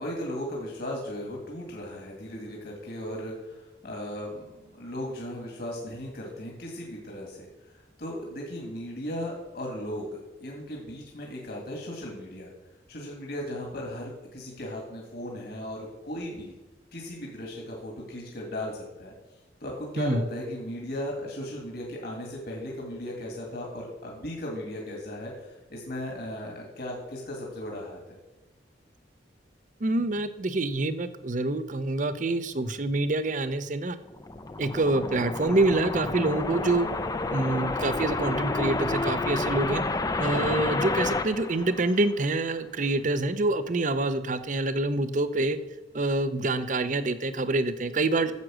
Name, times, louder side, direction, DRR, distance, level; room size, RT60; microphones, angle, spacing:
voice 1, 0.0-7.5 8.0-12.5 12.9-16.5 16.9-19.1 19.6-28.2 40.3-40.7 48.2-48.3, left 1 dB, 55° left, -1 dB, 2.1 m, -37 dB
voice 2, 29.8-34.0 34.6-36.9 37.3-39.8 40.2-45.6 45.9-48.3, right 2 dB, 45° right, 12 dB, 0.7 m, -26 dB
sound 1, 34.0-42.4, left 2 dB, 20° left, 0.5 m, -30 dB
9.5 x 7.5 x 6.2 m, 1.1 s
head